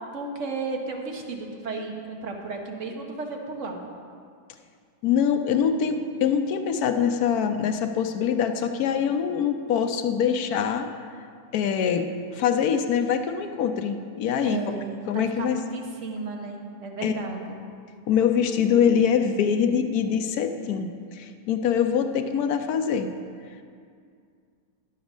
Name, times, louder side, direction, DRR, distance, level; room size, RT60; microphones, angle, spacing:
voice 1, 0.1-3.8 14.4-17.6, right 3 dB, 45° right, 2 dB, 1.2 m, -34 dB
voice 2, 5.0-10.9 11.5-14.8 15.1-15.6 17.0-17.1 18.1-23.1, left 7 dB, 65° left, 6 dB, 0.9 m, -24 dB
11.5 x 7.3 x 6.1 m, 2.2 s
omnidirectional pair, 2.1 m